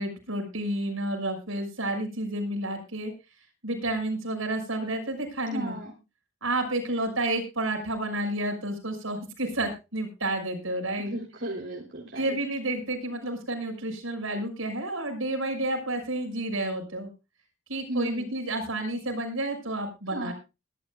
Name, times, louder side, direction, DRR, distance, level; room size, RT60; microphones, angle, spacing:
voice 1, 0.0-3.1 3.6-5.8 6.4-11.1 12.1-17.1 17.7-20.3, right 1 dB, 80° right, 4 dB, 6.3 m, -30 dB
voice 2, 5.5-5.9 11.1-12.3 17.9-18.3 20.1-20.3, right 1 dB, 60° right, -1 dB, 3.5 m, -34 dB
22.0 x 12.5 x 2.4 m, 0.29 s
head